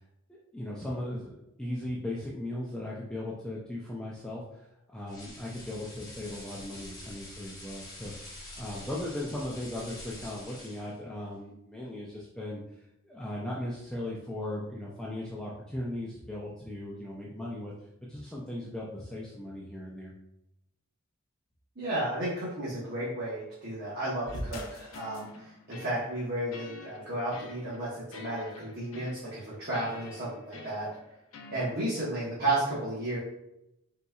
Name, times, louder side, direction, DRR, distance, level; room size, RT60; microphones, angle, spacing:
voice 1, 0.3-4.6 4.9-12.6 13.0-17.7 18.1-20.1, left 1 dB, 5° left, -5 dB, 0.5 m, -38 dB
sound 1, 5.1-11.0, left 1 dB, 20° left, 1.1 m, -46 dB
voice 2, 21.8-30.9 31.5-33.2, right 1 dB, 50° right, -9 dB, 1.3 m, -33 dB
sound 2, 24.3-31.6, left 2 dB, 75° left, 0.6 m, -45 dB
4.1 x 3.9 x 2.4 m, 0.85 s
head